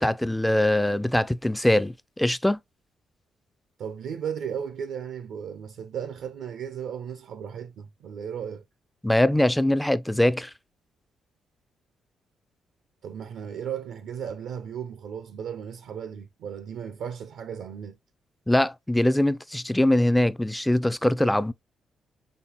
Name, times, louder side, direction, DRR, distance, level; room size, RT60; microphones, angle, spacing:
voice 1, 0.0-2.6 9.0-10.5 18.5-21.5, left 1 dB, 10° left, 0.3 m, -22 dB
voice 2, 3.8-8.6 13.0-18.0, right 8 dB, 70° right, 0.4 m, -35 dB
4.1 x 3.3 x 2.9 m
hypercardioid pair, 45°, 0 cm